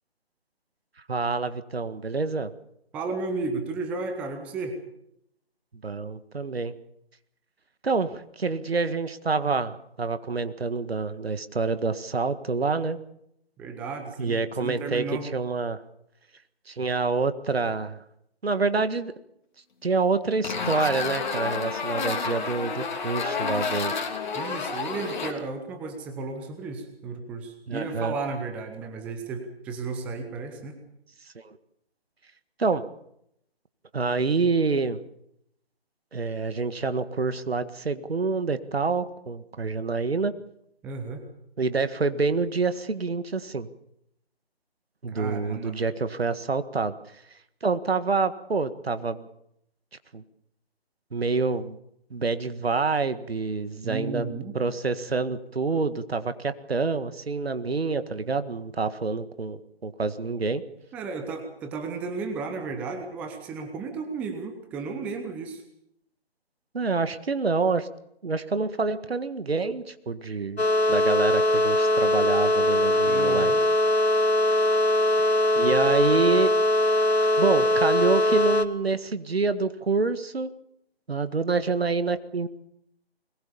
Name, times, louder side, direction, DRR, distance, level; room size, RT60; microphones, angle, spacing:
voice 1, 1.1-2.5 5.8-6.7 7.8-13.0 14.2-15.8 16.7-18.0 18.4-19.1 19.8-23.9 27.7-28.2 31.4-31.6 32.6-32.8 33.9-35.0 36.1-40.3 41.6-43.7 45.0-46.9 47.6-49.3 50.1-50.2 51.1-51.8 52.1-54.3 54.5-60.6 66.7-67.9 68.2-73.5 75.2-76.5 77.4-80.5 81.1-82.5, right 4 dB, 70° right, 12 dB, 1.8 m, -27 dB
voice 2, 2.9-4.8 13.6-15.3 24.3-30.8 40.8-41.2 45.1-45.9 53.8-54.6 60.9-65.6 73.1-73.6, right 4 dB, 5° right, 6 dB, 0.8 m, -34 dB
sound 1, 20.4-25.3, left 5 dB, 45° left, 3.4 m, -30 dB
sound 2, 70.6-78.7, left 1 dB, 80° left, 1.8 m, -21 dB
21.5 x 20.0 x 7.1 m, 0.76 s
figure-of-eight pair, 150°, 32 cm